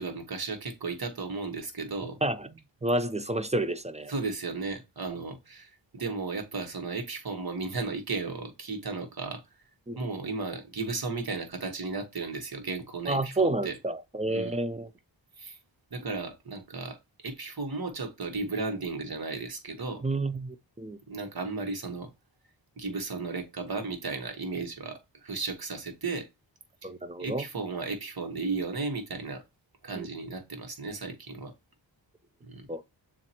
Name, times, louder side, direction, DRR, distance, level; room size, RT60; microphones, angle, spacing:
voice 1, 0.0-2.2 4.1-9.4 10.0-13.7 14.3-14.6 15.4-15.6 15.9-17.0 17.2-20.0 21.1-22.1 22.8-26.3 27.2-29.4 29.8-31.5 32.5-32.7, right 3 dB, 50° right, 1.3 m, -34 dB
voice 2, 2.8-4.1 9.9-10.0 13.1-14.9 20.0-21.0 26.8-27.5 29.9-30.1 32.7-32.8, right 2 dB, 15° right, 0.4 m, -30 dB
7.1 x 2.5 x 2.8 m
wide cardioid pair, 70°, 45 cm